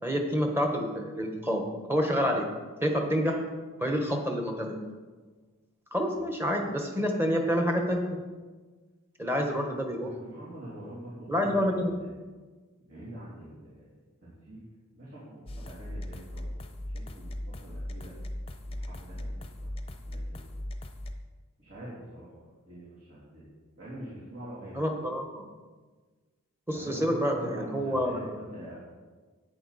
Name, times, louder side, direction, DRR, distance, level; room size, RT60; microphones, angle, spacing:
voice 1, 0.0-2.5 2.8-3.4 3.8-4.8 5.9-8.2 9.2-10.1 11.3-11.9 24.7-25.5 26.7-28.5, equal, 10° right, 2 dB, 1.1 m, -28 dB
voice 2, 6.1-6.4 9.4-12.1 12.9-13.9 14.2-14.6 14.9-16.6 16.9-18.1 18.7-20.6 21.6-23.5 23.8-24.9 26.7-28.7, right 1 dB, 60° right, -10 dB, 3.1 m, -45 dB
sound 1, 15.5-21.1, left 1 dB, 25° left, 0.7 m, -38 dB
11.0 x 9.0 x 4.2 m, 1.4 s
head